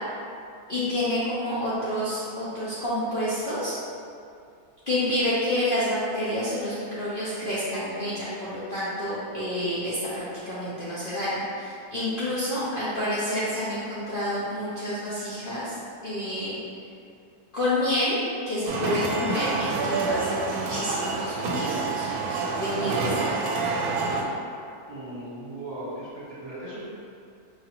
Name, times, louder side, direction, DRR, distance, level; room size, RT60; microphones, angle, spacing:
voice 1, 0.7-3.7 4.9-15.8 16.0-16.5 17.5-18.2 18.5-23.6, left 1 dB, 50° left, -11 dB, 0.7 m, -29 dB
sound 1, 18.7-24.2, right 4 dB, 75° right, 1.0 m, -27 dB
voice 2, 24.9-26.8, right 1 dB, 45° right, -10 dB, 1.2 m, -37 dB
4.9 x 2.5 x 2.9 m, 2.4 s
omnidirectional pair, 1.6 m